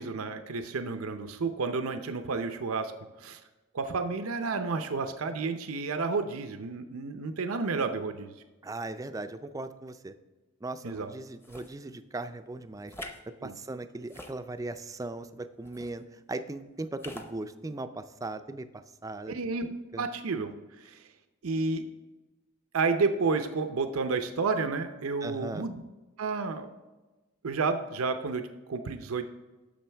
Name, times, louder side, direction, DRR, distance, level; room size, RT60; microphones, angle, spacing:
voice 1, 0.0-2.9 3.2-3.4 3.7-8.3 10.8-11.1 13.4-13.6 19.3-21.0 21.4-21.8 22.7-25.8 26.2-26.7 27.4-29.3, right 4 dB, 90° right, 8 dB, 0.6 m, -31 dB
voice 2, 8.6-10.1 10.6-12.9 13.4-16.0 16.3-18.7 19.0-19.3 19.9-20.1 25.2-25.7, right 2 dB, 15° right, 10 dB, 0.4 m, -38 dB
sound 1, 11.4-11.8 12.9-13.2 14.0-14.8 15.7-15.9 17.0-17.3, left 1 dB, 10° left, 0.7 m, -44 dB
10.0 x 7.0 x 3.4 m, 1.2 s
head